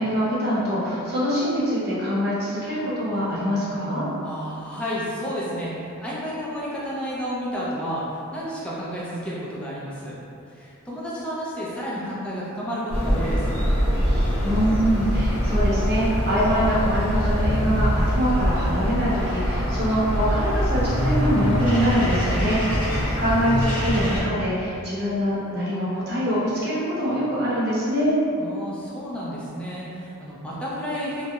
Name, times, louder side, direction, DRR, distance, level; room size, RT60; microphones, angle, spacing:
voice 1, 0.0-4.1 14.0-28.2, equal, 45° right, -9 dB, 0.7 m, -24 dB
voice 2, 4.2-10.2 10.5-13.6 22.7-23.2 28.4-31.3, equal, 5° left, -7 dB, 0.4 m, -31 dB
sound 1, 12.9-24.2, equal, 25° left, 1.0 m, -23 dB
2.3 x 2.0 x 2.8 m, 2.7 s
head